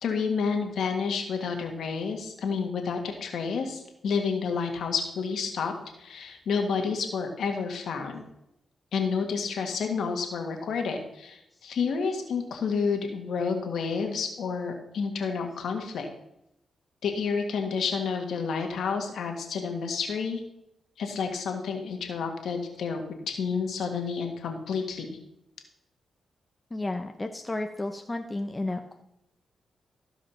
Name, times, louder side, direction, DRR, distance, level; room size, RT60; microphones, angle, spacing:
voice 1, 0.0-5.7 6.0-8.2 8.9-16.1 17.0-20.4 21.0-25.2, left 5 dB, 80° left, 4 dB, 1.8 m, -30 dB
voice 2, 26.7-29.0, left 2 dB, 25° left, 5 dB, 0.8 m, -32 dB
15.0 x 5.0 x 5.7 m, 0.82 s
cardioid pair, 60°, 0 cm